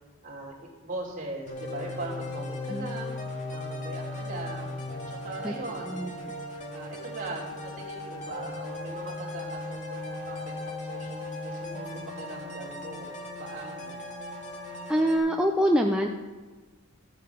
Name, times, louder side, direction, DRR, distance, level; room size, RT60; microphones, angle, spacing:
voice 1, 0.2-3.1 3.5-4.8 5.1-6.3 6.7-13.1 13.4-14.0, right 2 dB, 35° right, -4 dB, 3.2 m, -40 dB
sound 1, 1.5-15.2, left 2 dB, 35° left, 2.1 m, -37 dB
voice 2, 5.9-6.3 14.9-16.1, equal, 5° right, 1 dB, 0.5 m, -25 dB
14.0 x 9.6 x 4.7 m, 1.3 s
head